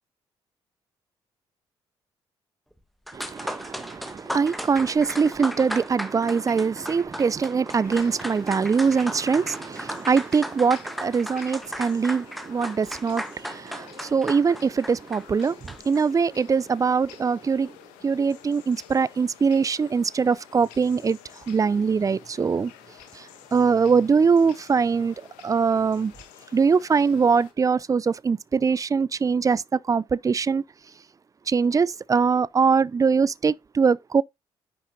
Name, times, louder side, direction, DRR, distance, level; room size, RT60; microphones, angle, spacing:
sound 1, 2.8-2.9 3.1-16.0, equal, ahead, 1.3 m, -36 dB
voice 1, 3.1-17.8 18.0-21.2 21.5-22.7 23.1-26.1 26.5-30.6 31.5-34.2, right 5 dB, 25° right, 0.4 m, -22 dB
sound 2, 7.8-27.5, left 10 dB, 70° left, 1.3 m, -50 dB
10.0 x 7.0 x 2.8 m
figure-of-eight pair, 40°, 13 cm